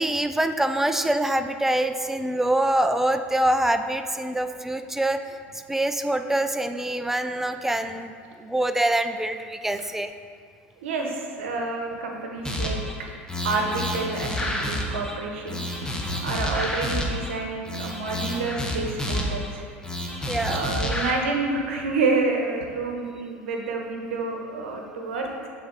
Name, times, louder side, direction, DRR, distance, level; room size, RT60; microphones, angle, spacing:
voice 1, 0.0-5.4 5.7-8.1 8.4-10.1 20.3-20.7, right 1 dB, 5° right, 8 dB, 0.3 m, -25 dB
voice 2, 10.8-12.8 13.4-15.6 16.2-19.6 20.4-25.5, right 3 dB, 80° right, 1 dB, 0.9 m, -28 dB
sound 1, 12.4-12.9 13.3-15.1 15.5-17.3 17.6-19.5 19.8-21.1, left 1 dB, 10° left, 0.9 m, -29 dB
6.8 x 3.7 x 3.9 m, 2.1 s
hypercardioid pair, 80°, 7 cm